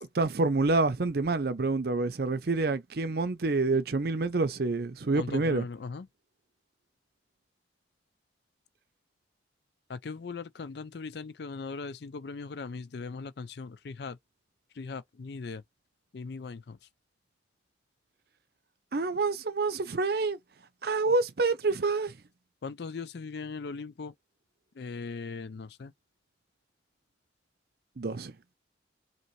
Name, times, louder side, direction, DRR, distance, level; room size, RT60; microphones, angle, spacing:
voice 1, 0.1-5.6 18.9-20.4 20.8-22.2 28.0-28.3, right 3 dB, 55° right, 0.6 m, -27 dB
voice 2, 5.1-6.1 9.9-14.2 14.8-15.6 16.1-16.8 22.6-24.1 24.8-25.9, left 4 dB, 60° left, 0.4 m, -39 dB
5.2 x 2.9 x 3.2 m
head